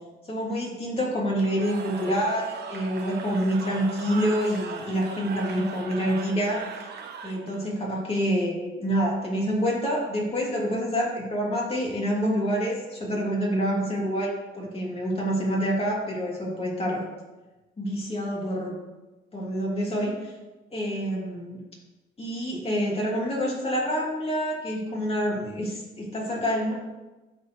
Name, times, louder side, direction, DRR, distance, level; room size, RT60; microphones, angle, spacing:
voice 1, 0.3-6.7 7.2-17.0 17.8-18.7 19.3-20.3 20.7-21.6 22.2-26.7, equal, 30° left, -4 dB, 2.7 m, -27 dB
Cheering / Crowd, 1.4-7.7, right 5 dB, 60° right, 1.0 m, -38 dB
11.5 x 4.5 x 3.2 m, 1.1 s
cardioid pair, 90°, 20 cm